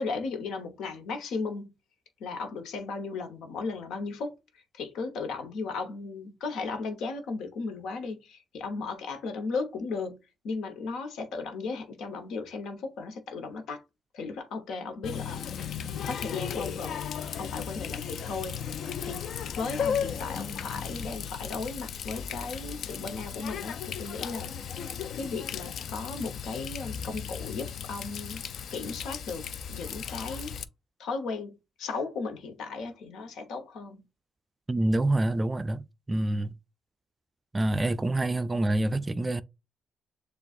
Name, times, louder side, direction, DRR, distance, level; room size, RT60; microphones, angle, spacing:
voice 1, 0.0-1.7 2.2-10.2 10.4-13.8 14.1-15.7 16.0-17.0 17.4-18.6 19.0-24.8 25.1-28.4 28.7-30.6 31.0-34.0, left 4 dB, 80° left, 1.0 m, -36 dB
Water tap faucet, 15.0-30.6, left 7 dB, 65° left, 0.4 m, -36 dB
voice 2, 34.7-36.5 37.5-39.4, right 1 dB, 20° right, 0.3 m, -27 dB
7.0 x 2.4 x 2.5 m
cardioid pair, 90°, 0 cm